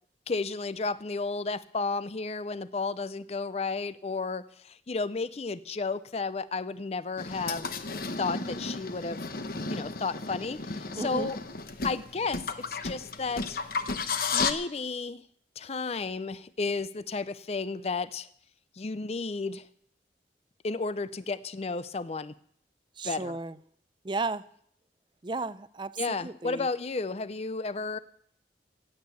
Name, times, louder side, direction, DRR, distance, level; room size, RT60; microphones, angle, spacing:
voice 1, 0.3-7.7 8.2-9.3 9.7-11.4 11.8-13.6 14.3-15.2 15.6-18.3 18.8-19.7 20.6-22.3 23.0-23.4 26.0-28.0, left 4 dB, 35° left, 15 dB, 0.5 m, -33 dB
sound 1, 7.2-14.5, left 4 dB, 55° left, 1.0 m, -33 dB
voice 2, 11.0-11.3 23.0-23.6 24.0-24.5 25.2-26.7, right 3 dB, 25° right, 15 dB, 0.5 m, -34 dB
15.5 x 8.8 x 8.2 m, 0.65 s
head